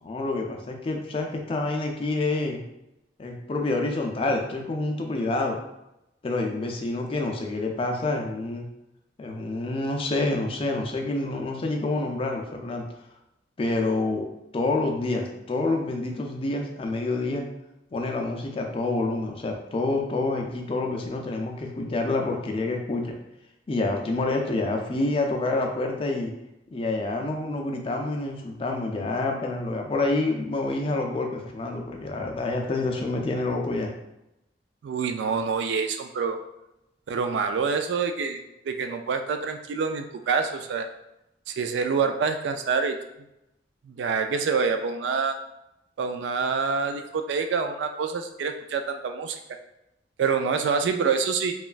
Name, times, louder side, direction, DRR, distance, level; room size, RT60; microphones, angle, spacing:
voice 1, 0.0-2.6 3.2-5.6 6.2-8.7 9.2-12.8 13.6-14.3 14.5-17.5 17.9-23.2 23.7-26.3 26.7-33.9, left 2 dB, 30° left, 2 dB, 0.4 m, -27 dB
voice 2, 34.8-36.4 37.1-38.4 38.7-40.9 41.5-43.0 43.9-45.4 46.0-49.4 50.2-51.5, right 5 dB, 80° right, 7 dB, 0.3 m, -26 dB
3.0 x 2.3 x 2.4 m, 0.88 s
head